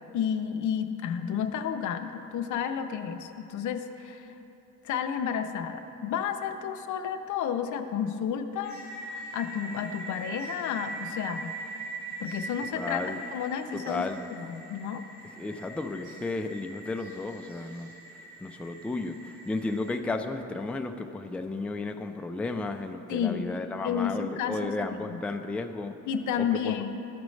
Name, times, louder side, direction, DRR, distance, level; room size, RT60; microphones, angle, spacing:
voice 1, 0.1-4.3 4.8-11.6 12.2-13.0 13.3-14.0 14.3-15.0 23.1-23.5 23.8-24.8 25.1-25.2 26.1-26.9, left 8 dB, 75° left, 7 dB, 0.6 m, -31 dB
sound 1, 8.6-19.9, right 2 dB, 80° right, 1.5 m, -42 dB
voice 2, 12.7-13.2 13.7-14.3 15.4-17.9 18.4-26.0 26.4-26.7, left 3 dB, 5° left, 5 dB, 0.3 m, -33 dB
13.5 x 5.1 x 3.2 m, 3.0 s
cardioid pair, 90°, 30 cm